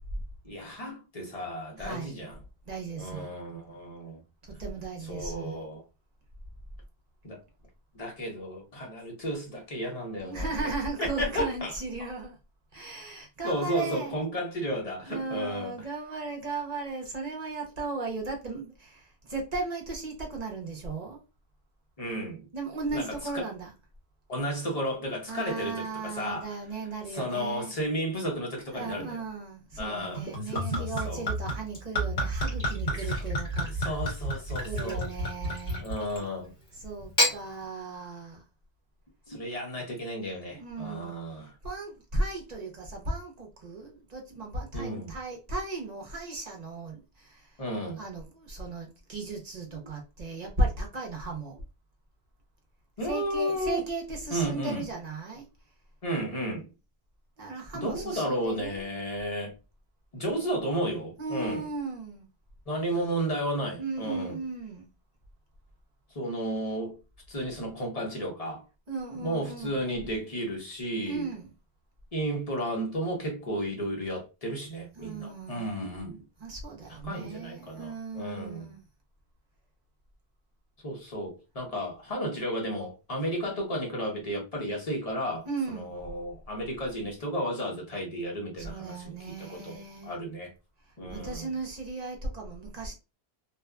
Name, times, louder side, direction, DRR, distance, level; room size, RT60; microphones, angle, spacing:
voice 1, 0.4-2.4 3.0-4.2 5.0-5.8 7.2-7.4 7.9-10.6 11.0-11.7 13.4-15.7 22.0-22.5 22.9-23.5 24.3-26.6 27.1-29.2 29.8-31.3 33.0-33.3 33.8-35.1 35.8-36.5 39.3-41.5 44.7-45.1 47.6-48.0 49.7-49.8 53.0-53.8 54.3-54.8 56.0-56.7 57.7-59.5 60.1-61.6 62.7-64.4 66.1-67.0 67.3-68.6 69.1-71.3 72.1-76.2 76.9-78.7 80.8-90.5 91.0-91.5, equal, 35° left, 0.9 m, -33 dB
voice 2, 1.8-2.1 2.7-3.3 4.5-5.7 10.2-12.3 12.7-14.2 15.0-21.2 22.5-23.7 25.3-27.7 28.7-33.7 34.6-35.9 36.8-38.4 40.5-41.1 41.6-47.5 48.0-51.6 53.0-55.5 57.4-58.9 61.2-62.3 63.8-64.9 68.9-69.8 71.1-71.5 75.0-75.7 76.4-78.8 85.5-85.9 88.6-90.1 91.1-92.9, right 3 dB, 45° right, 0.8 m, -36 dB
Gurgling / Chink clink / Liquid, 30.2-36.3 37.0-37.4, equal, 55° left, 1.3 m, -30 dB
2.7 x 2.3 x 2.2 m
omnidirectional pair, 1.1 m